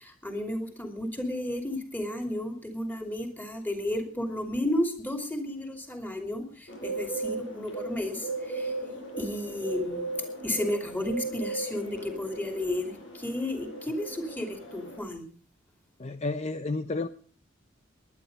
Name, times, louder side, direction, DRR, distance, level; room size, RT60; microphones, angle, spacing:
voice 1, 0.0-6.4 6.8-8.3 8.5-8.7 9.2-10.0 10.4-12.9 13.2-15.2, left 1 dB, 10° left, 5 dB, 2.9 m, -32 dB
Bird, 6.7-15.0, right 3 dB, 75° left, 7.8 m, -37 dB
voice 2, 16.0-17.1, left 3 dB, 35° left, 11 dB, 0.6 m, -31 dB
19.5 x 11.0 x 5.3 m, 0.40 s
head